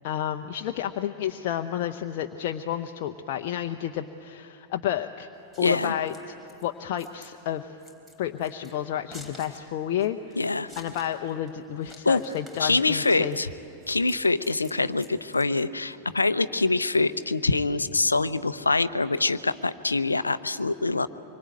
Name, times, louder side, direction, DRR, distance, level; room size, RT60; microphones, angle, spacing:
voice 1, 0.0-5.3 5.6-6.1 6.6-7.7 8.2-10.4 10.8-13.4, left 10 dB, 50° left, 5 dB, 0.8 m, -30 dB
Scissors, 5.3-15.9, equal, 10° right, 4.1 m, -51 dB
voice 2, 5.6-5.9 10.4-10.7 12.1-12.2 12.6-13.5 13.9-21.1, left 3 dB, 80° left, 14 dB, 0.7 m, -24 dB
25.5 x 23.0 x 8.9 m, 2.8 s
figure-of-eight pair, 90°, 0 cm